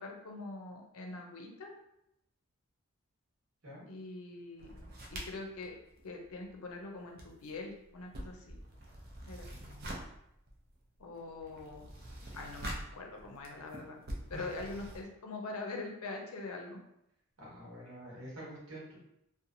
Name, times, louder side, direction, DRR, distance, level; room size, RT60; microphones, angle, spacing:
voice 1, 0.0-1.7 3.9-4.7 5.1-5.7 6.0-8.6 9.3-9.5 11.0-11.9 12.3-14.0 14.3-16.8, left 3 dB, 80° left, 2 dB, 0.6 m, -43 dB
sound 1, 4.6-6.8 7.0-15.0, right 1 dB, 45° right, 0.5 m, -46 dB
voice 2, 9.5-10.0 14.3-14.4 17.4-19.0, right 1 dB, 75° right, -6 dB, 1.2 m, -48 dB
2.8 x 2.2 x 2.6 m, 0.80 s
head